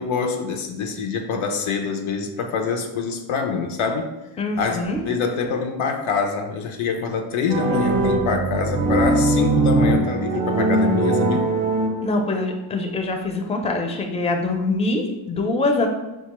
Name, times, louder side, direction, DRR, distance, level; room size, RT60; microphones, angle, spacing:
voice 1, 0.0-4.1 4.6-11.5, left 5 dB, 75° left, 4 dB, 0.6 m, -25 dB
voice 2, 4.4-5.0 12.0-15.9, left 2 dB, 15° left, 3 dB, 0.4 m, -24 dB
sound 1, 7.5-12.4, right 2 dB, 40° right, 0.6 m, -21 dB
4.0 x 2.3 x 2.9 m, 1.0 s
cardioid pair, 60°, 49 cm